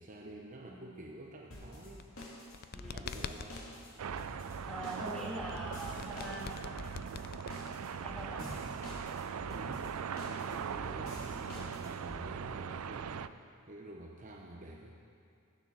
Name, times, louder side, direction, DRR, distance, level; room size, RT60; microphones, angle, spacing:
voice 1, 0.0-2.1 2.9-3.6 8.4-8.6 9.5-9.9 10.3-15.0, right 1 dB, 35° right, 0 dB, 0.9 m, -48 dB
sound 1, 1.5-12.2, left 1 dB, 75° left, 2.9 m, -48 dB
sound 2, 1.9-3.7 5.5-8.0, left 6 dB, 45° left, 0.4 m, -45 dB
voice 2, 2.7-3.1 4.7-6.5 8.0-8.5, right 1 dB, 5° left, -6 dB, 2.3 m, -42 dB
sound 3, 4.0-13.3, right 7 dB, 85° right, 0.4 m, -40 dB
16.0 x 9.0 x 6.4 m, 2.4 s
head